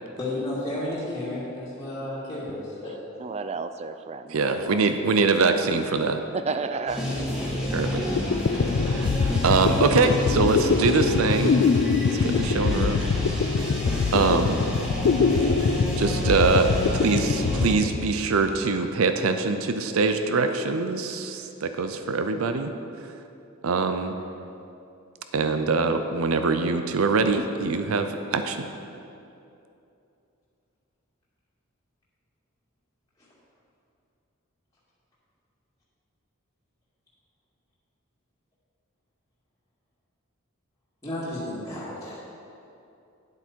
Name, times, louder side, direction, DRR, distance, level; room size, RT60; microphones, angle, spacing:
voice 1, 0.2-2.9 41.0-42.2, left 1 dB, 15° left, -10 dB, 2.2 m, -32 dB
voice 2, 2.9-4.8 6.3-7.0, right 4 dB, 30° right, 10 dB, 0.4 m, -32 dB
voice 3, 4.3-6.2 7.7-8.1 8.8-11.6 12.2-13.1 14.1-14.6 15.4-15.5 16.0-22.7 23.6-24.1 25.3-28.7, right 4 dB, 90° right, 8 dB, 0.6 m, -23 dB
sound 1, 6.9-17.7, equal, 5° right, 2.2 m, -29 dB
sound 2, 7.9-8.0 8.2-18.6, left 5 dB, 60° left, 0.3 m, -24 dB
9.8 x 8.0 x 4.5 m, 2.7 s
head